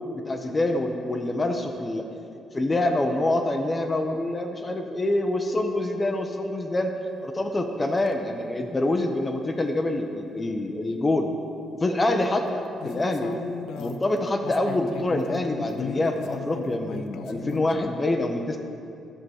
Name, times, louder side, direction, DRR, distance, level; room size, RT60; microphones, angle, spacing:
voice 1, 0.1-2.1 2.5-6.9 7.2-11.3 11.8-13.3 13.8-18.6, left 2 dB, 25° left, 4 dB, 0.7 m, -26 dB
sound 1, 8.0-8.2 12.8-17.8, left 6 dB, 80° left, 0.4 m, -36 dB
11.5 x 5.9 x 4.8 m, 2.6 s
cardioid pair, 90°, 0 cm